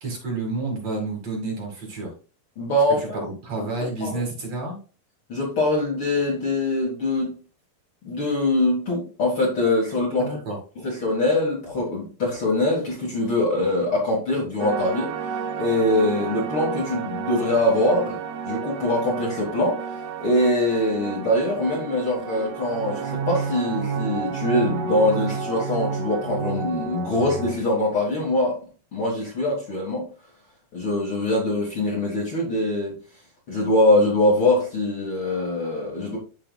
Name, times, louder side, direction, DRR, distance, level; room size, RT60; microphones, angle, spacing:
voice 1, 0.0-2.1 3.0-4.8 10.2-10.6, right 3 dB, 50° right, 1 dB, 2.8 m, -30 dB
voice 2, 2.6-3.2 4.0-4.2 5.3-7.4 8.0-10.3 10.8-15.1 15.6-18.2 18.4-19.9 20.2-28.6 28.9-30.1 30.7-32.9 33.5-36.2, left 1 dB, 45° left, -3 dB, 2.0 m, -23 dB
sound 1, 14.6-27.5, right 6 dB, 70° right, 2.0 m, -30 dB
12.5 x 4.8 x 2.3 m, 0.35 s
omnidirectional pair, 4.1 m